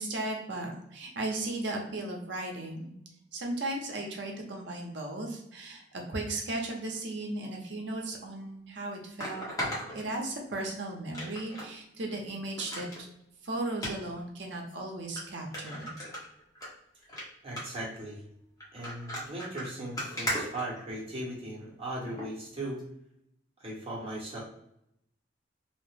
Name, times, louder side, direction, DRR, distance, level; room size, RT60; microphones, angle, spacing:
voice 1, 0.0-2.9 3.3-9.5 9.9-13.1 13.4-15.9, right 2 dB, 65° right, 1 dB, 0.7 m, -36 dB
sound 1, 8.1-8.2 9.2-10.6 11.1-11.7 12.1-12.2 12.6-13.0 13.7-13.9 14.7-14.8 15.2-15.3 15.5-16.7 17.0-17.2 17.6-17.9 18.6-21.3 22.1-22.3 22.8-22.9, equal, 20° left, 1.0 m, -37 dB
voice 2, 17.4-18.2 18.7-22.8 23.6-24.4, right 1 dB, 30° right, -4 dB, 1.0 m, -38 dB
2.9 x 2.1 x 3.2 m, 0.77 s
head